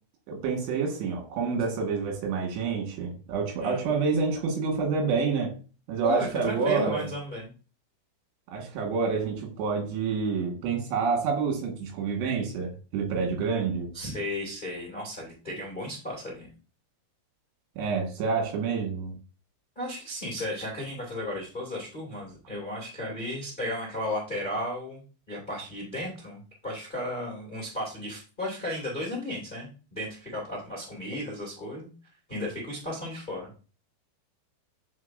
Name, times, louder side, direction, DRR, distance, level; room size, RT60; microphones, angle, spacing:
voice 1, 0.3-5.5 5.9-7.1 8.5-13.9 17.8-19.2, right 5 dB, 75° right, 3.7 m, -28 dB
voice 2, 6.0-7.5 13.9-16.5 19.7-31.9 32.3-33.5, left 1 dB, 20° left, 1.2 m, -34 dB
9.5 x 4.6 x 2.5 m
omnidirectional pair, 5.0 m